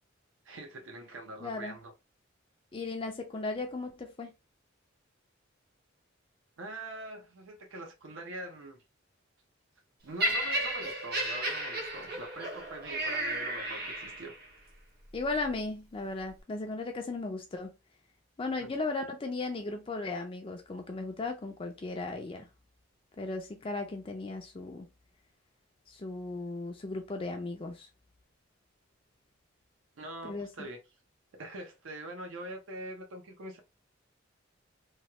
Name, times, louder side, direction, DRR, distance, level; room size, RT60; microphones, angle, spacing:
voice 1, 0.4-1.9 6.6-8.8 10.0-14.3 18.6-18.7 30.0-30.8 31.3-33.6, right 1 dB, 75° right, 0.7 m, -43 dB
voice 2, 1.4-1.8 2.7-4.3 15.1-17.7 18.4-22.5 23.2-24.9 25.9-27.9 30.2-30.7, left 3 dB, 25° left, 0.4 m, -36 dB
Laughter, 10.2-14.4 15.2-15.4, right 1 dB, 50° right, 1.0 m, -33 dB
3.1 x 2.3 x 2.8 m
head